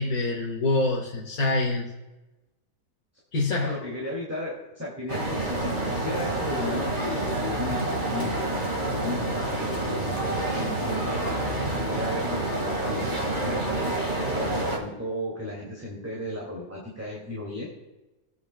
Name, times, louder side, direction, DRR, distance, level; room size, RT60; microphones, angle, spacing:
voice 1, 0.0-1.9 3.3-3.8, left 2 dB, 75° left, -3 dB, 1.9 m, -25 dB
voice 2, 3.6-7.8 8.1-8.4 9.0-11.2 11.8-13.8 14.3-17.7, left 1 dB, 10° right, -5 dB, 2.2 m, -35 dB
sound 1, 5.1-14.8, right 2 dB, 35° right, 1.9 m, -28 dB
20.5 x 8.5 x 2.2 m, 1.1 s
omnidirectional pair, 1.6 m